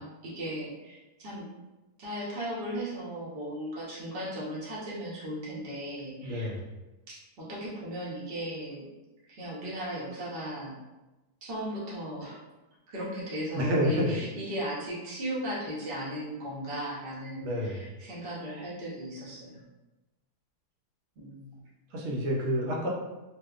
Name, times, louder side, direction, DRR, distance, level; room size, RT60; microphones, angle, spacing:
voice 1, 0.0-1.5 2.0-6.5 7.1-8.9 9.3-10.7 11.4-12.4 12.9-19.6 21.2-21.6, equal, 45° right, -6 dB, 0.8 m, -37 dB
voice 2, 6.2-6.6 13.5-14.2 17.4-17.9 21.9-22.9, equal, 70° right, -3 dB, 1.0 m, -29 dB
2.7 x 2.2 x 2.3 m, 1.1 s
omnidirectional pair, 1.7 m